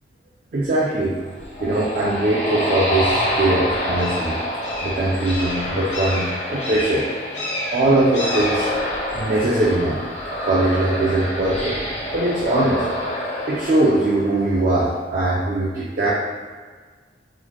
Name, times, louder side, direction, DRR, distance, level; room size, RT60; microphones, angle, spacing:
voice 1, 0.5-1.2 1.6-4.4 4.8-7.1 7.7-8.7 9.1-10.0 10.4-11.8 12.1-12.9 13.5-16.1, right 2 dB, 45° right, -6 dB, 0.4 m, -21 dB
sound 1, 0.8-14.6, left 1 dB, 75° left, 0.6 m, -36 dB
sound 2, 1.2-14.8, equal, 35° left, 0.5 m, -27 dB
3.8 x 2.1 x 3.0 m, 1.5 s
head